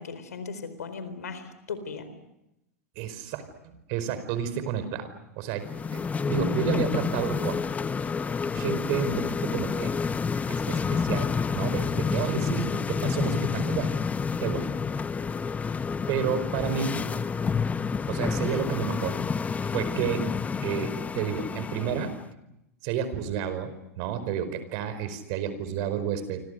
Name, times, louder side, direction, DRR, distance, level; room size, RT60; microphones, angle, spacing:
voice 1, 0.0-2.1, left 5 dB, 85° left, 11 dB, 4.2 m, -37 dB
voice 2, 2.9-5.1 5.4-5.7 5.9-6.0 6.3-7.6 8.5-9.9 10.5-13.9 14.4-14.7 16.1-17.0 18.1-19.2 19.7-20.3 20.6-22.1 22.8-26.4, right 8 dB, 55° right, 11 dB, 4.9 m, -30 dB
sound 1, 5.6-22.2, left 5 dB, 15° left, 0.9 m, -29 dB
29.0 x 25.0 x 6.7 m, 0.88 s
hypercardioid pair, 105°, 8 cm